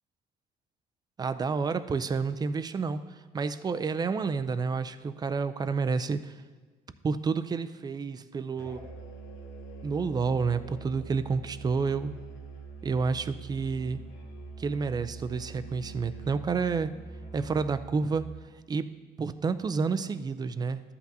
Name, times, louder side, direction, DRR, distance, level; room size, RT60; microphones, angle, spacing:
voice 1, 1.2-3.0 3.3-6.2 7.0-8.9 9.8-12.1 12.8-14.0 14.6-16.9 17.3-18.2 18.7-18.9 19.2-20.8, right 5 dB, 25° right, 12 dB, 0.4 m, -29 dB
Musical instrument, 8.6-18.4, right 4 dB, 90° left, 1.5 m, -44 dB
13.0 x 8.3 x 2.7 m, 1.4 s
cardioid pair, 110°, 17 cm